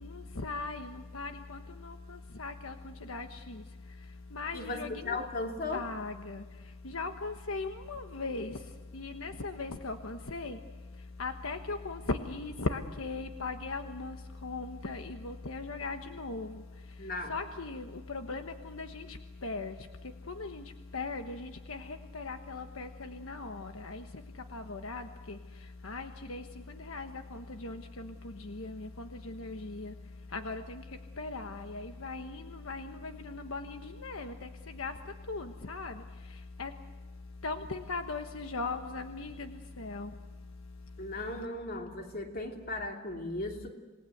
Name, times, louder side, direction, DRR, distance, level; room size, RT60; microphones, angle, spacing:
voice 1, 0.0-1.9 2.4-2.7 3.1-3.5 4.3-5.2 5.7-6.4 6.8-8.6 8.9-10.6 11.2-14.1 14.4-16.5 17.3-19.0 19.4-19.7 20.3-20.6 20.9-24.0 24.5-25.0 25.8-26.4 26.9-28.1 28.5-29.9 30.3-30.8 31.2-34.3 34.8-34.9 35.3-35.9 36.6-36.7 37.4-39.5 39.8-40.1, left 3 dB, 80° left, 6 dB, 1.3 m, -38 dB
voice 2, 4.5-5.8 17.0-17.4 41.0-43.7, left 2 dB, 45° left, 2 dB, 3.1 m, -36 dB
27.5 x 19.5 x 8.0 m, 1.3 s
head